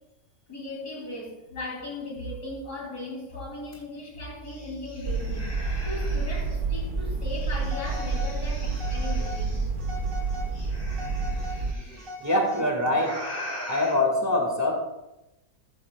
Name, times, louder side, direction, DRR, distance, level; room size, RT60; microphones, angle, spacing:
voice 1, 0.5-9.6, left 2 dB, 85° left, 3.7 m, -37 dB
sound 1, 3.7-3.8 4.2-6.6 7.3-9.7 10.5-12.1 12.9-13.9, equal, 35° left, 2.8 m, -41 dB
sound 2, 5.1-11.7, right 3 dB, 40° right, 0.8 m, -29 dB
Telephone, 7.6-8.3 8.7-9.4 9.8-10.5 10.9-12.9, left 2 dB, 65° right, 2.4 m, -40 dB
voice 2, 12.2-13.2 13.6-14.7, left 1 dB, 10° right, 1.8 m, -24 dB
14.0 x 11.5 x 2.4 m
omnidirectional pair, 1.6 m